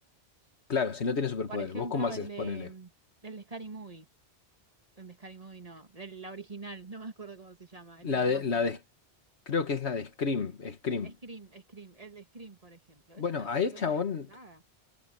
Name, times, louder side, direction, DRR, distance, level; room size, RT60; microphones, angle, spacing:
voice 1, 0.7-2.7 8.0-8.8 9.5-11.1 13.2-14.3, left 5 dB, 85° left, 1.8 m, -30 dB
voice 2, 1.5-2.9 3.2-4.1 5.0-8.8 11.0-14.0 14.3-14.6, right 3 dB, 35° right, 1.9 m, -45 dB
omnidirectional pair, 1.1 m